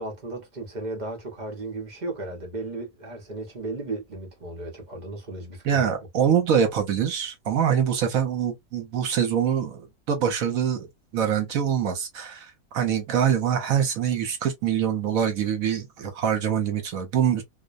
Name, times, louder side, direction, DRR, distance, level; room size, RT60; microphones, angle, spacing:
voice 1, 0.0-6.0, right 2 dB, 40° right, 0.8 m, -35 dB
voice 2, 5.6-10.9 11.1-17.4, right 8 dB, 70° right, 1.1 m, -24 dB
2.6 x 2.1 x 2.4 m
omnidirectional pair, 1.5 m